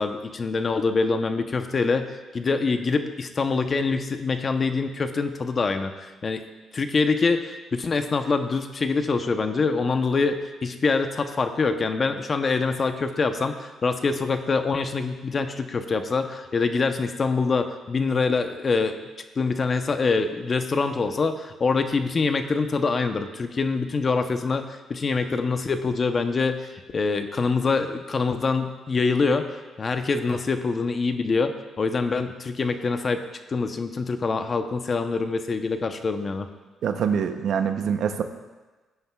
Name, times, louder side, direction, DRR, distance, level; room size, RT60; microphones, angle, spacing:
voice 1, 0.0-6.4 6.7-19.0 19.4-33.2 33.5-36.5, left 4 dB, 40° left, 8 dB, 0.8 m, -25 dB
voice 2, 36.8-38.2, right 7 dB, 70° right, 8 dB, 0.7 m, -24 dB
15.5 x 9.0 x 2.3 m, 1.2 s
cardioid pair, 90°, 0 cm